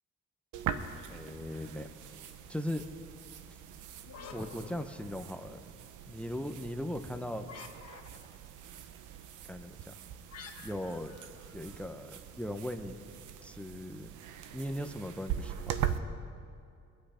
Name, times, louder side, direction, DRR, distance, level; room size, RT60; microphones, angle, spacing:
sound 1, 0.5-16.0, right 9 dB, 85° right, 0.9 m, -42 dB
voice 1, 1.1-1.9 2.5-2.8 3.5-3.6 4.3-5.6 6.1-7.5 9.4-9.9 10.6-11.2 11.5-13.0 13.4-14.1 14.5-15.9, left 1 dB, 5° left, 8 dB, 0.9 m, -39 dB
sound 2, 4.0-5.6 7.4-8.5 10.3-12.2, left 6 dB, 60° left, 1.7 m, -50 dB
24.5 x 8.5 x 5.1 m, 2.4 s
cardioid pair, 90°, 30 cm